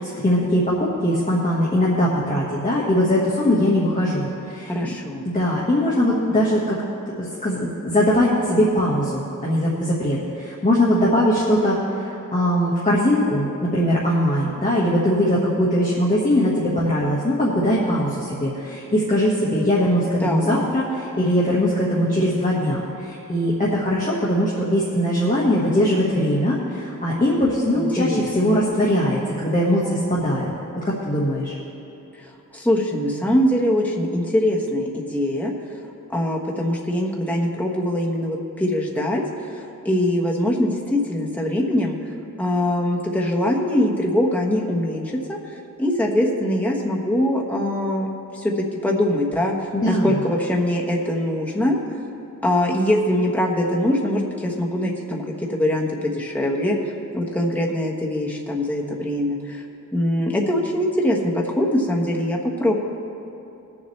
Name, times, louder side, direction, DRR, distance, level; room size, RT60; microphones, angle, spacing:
voice 1, 0.0-5.0 5.2-6.8 7.2-30.5 30.8-31.5 49.7-50.2, equal, 25° left, -7 dB, 1.5 m, -21 dB
voice 2, 4.7-5.2 20.2-20.6 27.8-28.6 32.2-35.5 36.1-42.0 42.4-48.1 48.3-49.5 49.8-51.8 52.4-56.8 57.1-59.6 59.9-62.7, left 1 dB, 5° left, -3 dB, 1.3 m, -22 dB
21.5 x 7.3 x 3.3 m, 2.9 s
wide cardioid pair, 155°, 33 cm